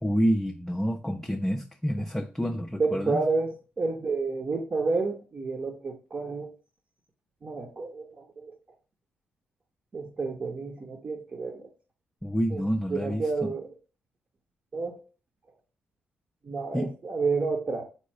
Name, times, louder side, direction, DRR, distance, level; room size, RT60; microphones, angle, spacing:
voice 1, 0.0-3.2 12.2-13.6 16.7-16.9, equal, 5° left, 4 dB, 0.4 m, -28 dB
voice 2, 2.8-6.5 7.4-8.5 9.9-11.6 12.5-12.6 12.9-13.7 14.7-15.0 16.4-17.8, right 4 dB, 40° right, 1 dB, 0.7 m, -30 dB
4.2 x 2.3 x 4.6 m, 0.36 s
cardioid pair, 80°, 4 cm